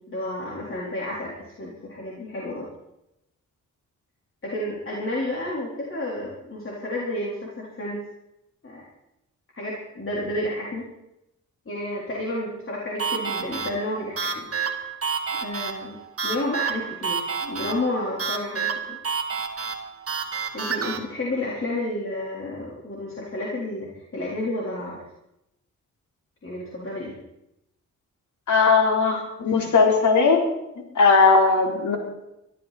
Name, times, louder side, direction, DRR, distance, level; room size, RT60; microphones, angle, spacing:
voice 1, 0.1-2.7 4.4-8.0 8.6-8.8 9.6-10.9 11.7-14.8 15.4-16.0 16.2-19.0 20.5-25.0 26.4-27.2, left 1 dB, 45° left, -4 dB, 3.8 m, -31 dB
sound 1, 13.0-21.0, right 5 dB, 50° right, 1.9 m, -29 dB
voice 2, 28.5-30.4 31.0-32.0, left 4 dB, 75° left, 1 dB, 3.8 m, -18 dB
23.0 x 13.0 x 4.2 m, 0.85 s
cardioid pair, 85°, 30 cm